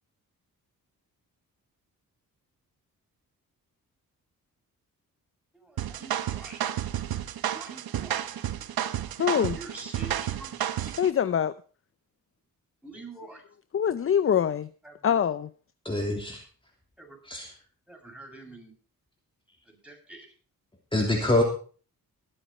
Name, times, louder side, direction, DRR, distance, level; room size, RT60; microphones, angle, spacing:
voice 1, 5.5-6.6 7.5-8.3 8.6-8.7 9.6-11.0 12.8-13.4 14.8-15.2 17.0-17.2 17.9-18.7 19.6-20.3, right 2 dB, 5° right, 6.7 m, -46 dB
sound 1, 5.8-11.1, right 11 dB, 80° right, 1.0 m, -31 dB
voice 2, 9.2-9.6 11.0-11.5 13.7-14.7 15.0-15.5, left 8 dB, 35° left, 0.6 m, -24 dB
voice 3, 15.8-16.4 17.3-17.5 20.9-21.4, left 1 dB, 15° left, 3.1 m, -25 dB
20.5 x 7.8 x 4.3 m
cardioid pair, 80°, 36 cm